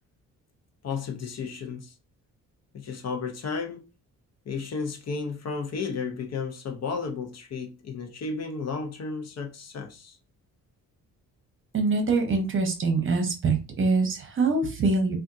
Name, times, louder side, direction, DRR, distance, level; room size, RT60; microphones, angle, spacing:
voice 1, 0.8-1.9 2.7-3.8 4.5-10.2, left 5 dB, 50° left, 0.7 m, -33 dB
voice 2, 11.7-15.2, right 3 dB, 40° right, 0.9 m, -24 dB
3.5 x 2.4 x 2.6 m
cardioid pair, 110°, 33 cm